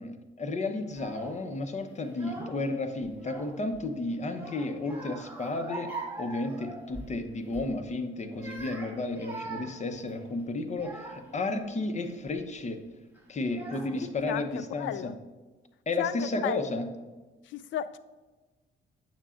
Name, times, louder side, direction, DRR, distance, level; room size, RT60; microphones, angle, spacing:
voice 1, 0.0-5.9 6.2-12.8 13.3-15.1 15.9-16.9, left 2 dB, 35° left, 7 dB, 0.8 m, -32 dB
Child speech kid speaking / Crying sobbing, 0.9-1.4 2.0-2.7 3.0-3.8 4.3-7.2 7.5-7.7 8.2-11.4 12.0-12.4 13.1-13.2 13.5-14.2, right 3 dB, 10° right, 2.4 m, -42 dB
voice 2, 14.3-15.1 16.0-16.7 17.5-18.0, left 11 dB, 70° left, 14 dB, 0.4 m, -34 dB
8.9 x 6.7 x 2.5 m, 1.2 s
cardioid pair, 90°, 20 cm